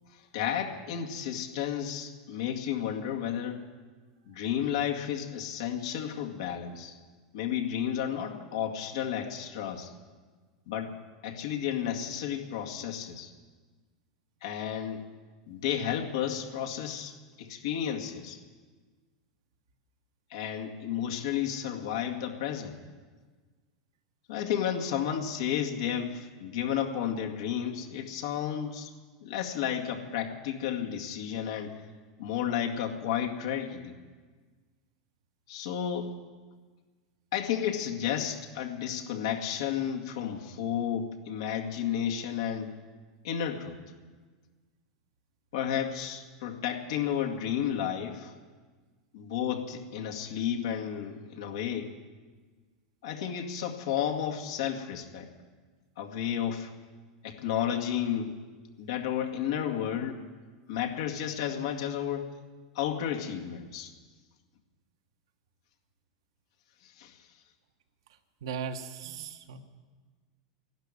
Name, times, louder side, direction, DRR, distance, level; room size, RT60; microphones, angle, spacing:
voice 1, 0.3-3.6 4.3-7.0 7.3-9.9 10.7-10.9 11.2-13.3 14.4-15.0 15.5-18.4 20.3-22.7 24.3-28.9 29.2-31.8 32.2-33.9 35.5-36.1 37.3-42.8 43.2-43.8 45.5-48.3 49.1-51.9 53.0-55.3 56.0-56.7 57.2-58.4 58.8-60.2 60.7-62.3 62.8-63.9 67.0-67.1, left 9 dB, 75° left, 2 dB, 2.2 m, -32 dB
voice 2, 68.4-69.6, right 6 dB, 80° right, 7 dB, 1.5 m, -37 dB
12.0 x 12.0 x 9.9 m, 1.4 s
hypercardioid pair, 105°, 3 cm